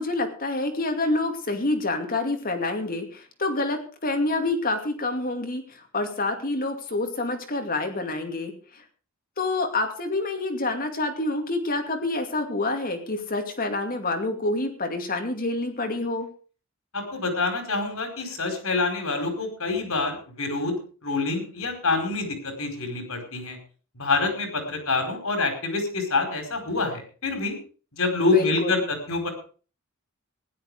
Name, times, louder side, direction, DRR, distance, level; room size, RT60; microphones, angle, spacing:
voice 1, 0.0-8.8 9.4-16.3 28.3-28.8, left 2 dB, 45° left, 5 dB, 2.5 m, -27 dB
voice 2, 16.9-20.7 21.0-23.6 24.0-27.6 28.0-29.3, left 3 dB, 85° left, 6 dB, 4.9 m, -26 dB
16.0 x 11.5 x 5.0 m, 0.39 s
head